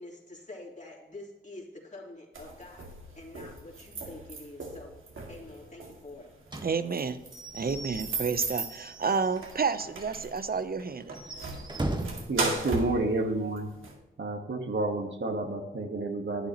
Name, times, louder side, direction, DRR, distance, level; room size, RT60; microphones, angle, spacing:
voice 1, 0.0-2.9 3.1-4.9 5.3-6.3, left 2 dB, 35° left, -2 dB, 3.3 m, -46 dB
sound 1, 2.3-13.9, right 3 dB, 75° right, 2.1 m, -37 dB
Slam / Squeak / Wood, 6.5-9.7 10.0-10.1 10.4-10.5 11.0-12.3, right 2 dB, 20° right, 1.4 m, -38 dB
voice 2, 6.6-7.2 7.5-11.2, right 5 dB, 45° right, 12 dB, 0.8 m, -30 dB
voice 3, 12.3-13.7 14.2-16.5, right 2 dB, 60° right, 3 dB, 1.5 m, -30 dB
11.5 x 8.9 x 3.0 m, 1.1 s
cardioid pair, 50°, 21 cm